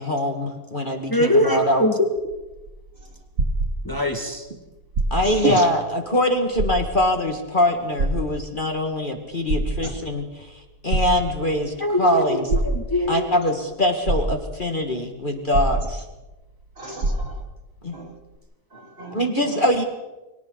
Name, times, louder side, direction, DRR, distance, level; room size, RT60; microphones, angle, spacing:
voice 1, 0.0-1.9 5.1-10.5 10.8-12.4 13.1-16.0 17.8-18.0 19.1-19.8, left 1 dB, 30° left, 3 dB, 2.1 m, -23 dB
voice 2, 1.1-1.9 3.8-4.5 11.8-13.3, left 1 dB, 15° left, 2 dB, 2.3 m, -22 dB
sound 1, 2.2-4.2 4.8-5.5 5.9-6.0 6.5-7.2 8.0-8.8 9.3-10.2 10.9-11.7 12.5-13.2 13.7-13.8 14.1-14.8 15.5-16.3 16.6-16.7 17.0-17.6 18.4-18.5, right 2 dB, 80° right, 2.7 m, -25 dB
voice 3, 5.2-5.7 16.8-17.4 17.9-18.1 18.7-19.6, right 2 dB, 40° right, 2 dB, 2.9 m, -30 dB
29.0 x 24.5 x 4.1 m, 1.1 s
omnidirectional pair, 1.7 m